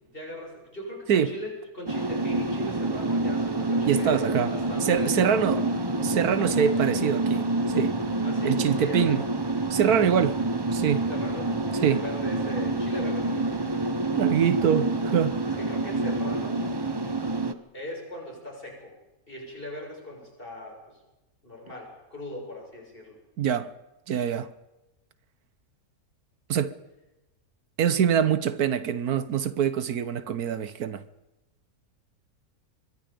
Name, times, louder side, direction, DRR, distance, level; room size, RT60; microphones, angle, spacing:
voice 1, 0.1-5.7 6.4-7.0 8.2-9.2 11.1-13.9 15.5-16.6 17.7-18.9 19.3-21.0 21.4-23.2, left 1 dB, 35° left, 7.2 m, -39 dB
sound 1, 1.9-17.5, right 2 dB, 20° right, 0.8 m, -27 dB
voice 2, 3.8-4.5 4.8-5.6 6.0-8.0 8.4-9.3 9.7-10.4 10.7-11.1 11.8-12.0 14.1-15.4 23.4-23.7 24.1-24.5 26.5-26.7 27.8-31.0, right 8 dB, 75° right, 1.4 m, -24 dB
24.5 x 21.5 x 5.2 m
omnidirectional pair, 1.6 m